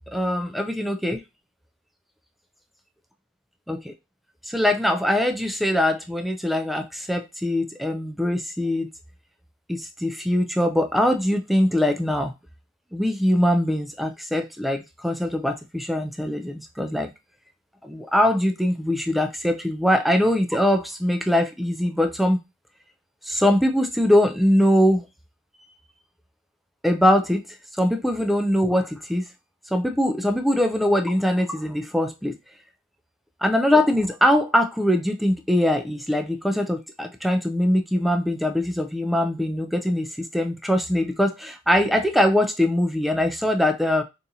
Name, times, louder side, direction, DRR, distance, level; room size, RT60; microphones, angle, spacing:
voice 1, 0.1-1.2 3.7-3.9 4.5-8.9 9.7-12.3 12.9-17.1 17.8-22.4 23.3-25.0 26.8-27.4 27.8-29.2 29.7-32.3 33.4-44.0, left 1 dB, ahead, 6 dB, 0.3 m, -22 dB
4.0 x 2.5 x 2.6 m, 0.24 s
head